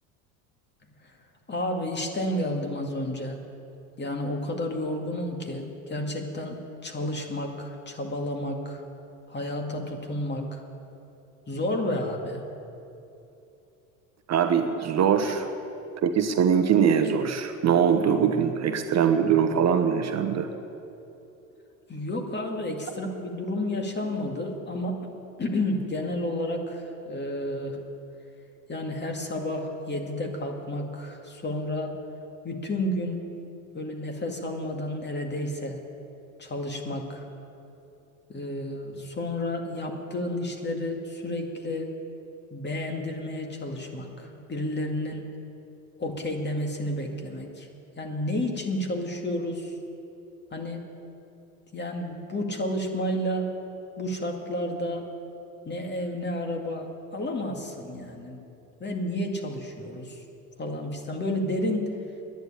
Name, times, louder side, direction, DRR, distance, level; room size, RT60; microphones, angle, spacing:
voice 1, 1.5-3.4 4.0-8.8 9.3-10.6 11.5-12.5 15.2-15.3 21.9-25.0 25.4-27.8 28.7-32.0 32.4-33.3 33.7-35.8 36.4-37.2 38.3-41.9 42.5-45.3 46.0-47.7 48.0-49.7 50.5-50.9 51.7-53.5 54.0-55.1 55.7-58.4 58.8-60.2 60.6-61.9, left 1 dB, 25° left, 3 dB, 2.2 m, -31 dB
voice 2, 14.3-15.5 16.0-20.5, right 7 dB, 40° right, 7 dB, 1.0 m, -22 dB
10.5 x 9.4 x 9.9 m, 2.8 s
hypercardioid pair, 75°, 42 cm